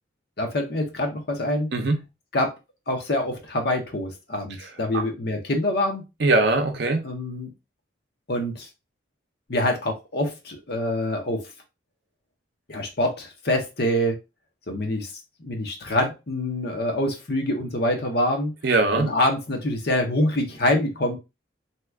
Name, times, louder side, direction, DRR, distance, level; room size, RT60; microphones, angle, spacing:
voice 1, 0.4-1.7 2.3-2.5 2.9-6.0 7.0-7.5 8.3-8.7 9.5-11.4 12.7-14.2 14.7-15.1 15.4-18.5 18.9-21.2, left 1 dB, 55° left, 0.8 m, -25 dB
voice 2, 6.2-7.0 18.6-19.1, right 2 dB, 55° right, 0.6 m, -21 dB
2.9 x 2.3 x 3.4 m
head